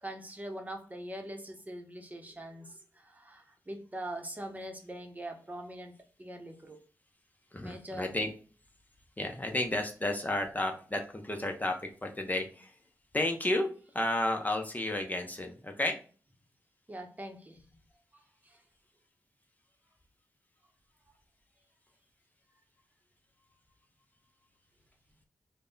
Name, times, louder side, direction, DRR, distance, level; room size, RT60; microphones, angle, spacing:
voice 1, 0.0-5.9 6.2-6.8 7.6-8.1 16.9-17.6 18.1-18.6, right 1 dB, 25° right, 4 dB, 0.9 m, -43 dB
voice 2, 7.5-8.3 9.2-12.7 13.1-13.7 13.9-16.0, left 1 dB, 25° left, 4 dB, 0.7 m, -32 dB
3.4 x 2.2 x 3.8 m, 0.39 s
cardioid pair, 45°, 6 cm